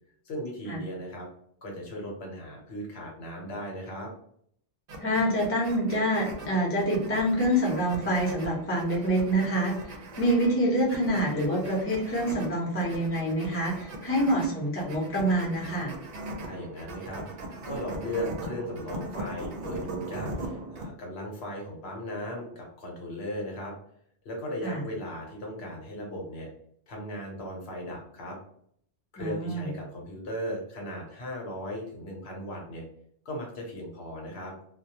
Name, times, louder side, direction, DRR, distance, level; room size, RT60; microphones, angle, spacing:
voice 1, 0.2-1.3 1.6-4.1 16.4-23.7 24.2-26.5 26.9-28.4 29.1-32.8 33.2-34.5, equal, 65° left, -1 dB, 1.0 m, -37 dB
sound 1, 4.9-20.9, right 1 dB, 65° right, 0.7 m, -40 dB
voice 2, 5.0-15.9 24.6-24.8 29.2-29.7, right 1 dB, 15° left, -4 dB, 0.6 m, -26 dB
2.2 x 2.1 x 2.7 m, 0.67 s
omnidirectional pair, 1.2 m